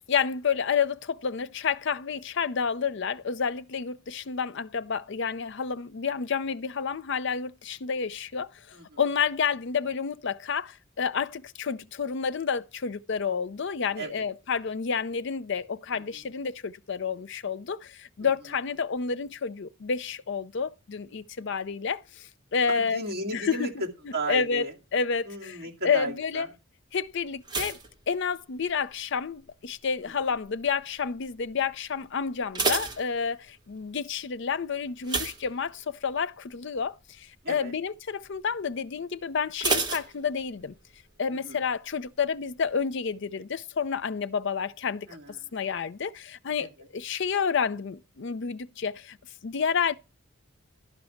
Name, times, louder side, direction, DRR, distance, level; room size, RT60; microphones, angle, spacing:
voice 1, 0.1-23.0 23.3-23.7 24.0-24.7 24.9-26.5 26.9-27.8 28.1-40.7 41.2-45.1 45.5-49.2 49.4-50.0, left 6 dB, 60° left, 0.5 m, -30 dB
voice 2, 14.0-14.3 15.9-16.2 18.2-18.5 22.7-24.7 25.2-26.5 30.0-30.1 37.4-37.7 41.3-41.6 45.1-45.5 46.6-46.7, right 1 dB, 50° right, 2.3 m, -35 dB
sound 1, 27.4-28.9 29.2-29.7 30.3-30.7 31.0-31.1 31.5-31.6 32.2-33.7 35.0-36.2 36.5-36.8 37.2-37.3 39.6-40.8 41.1-41.2, right 3 dB, 20° right, 1.4 m, -31 dB
12.0 x 5.3 x 5.9 m
head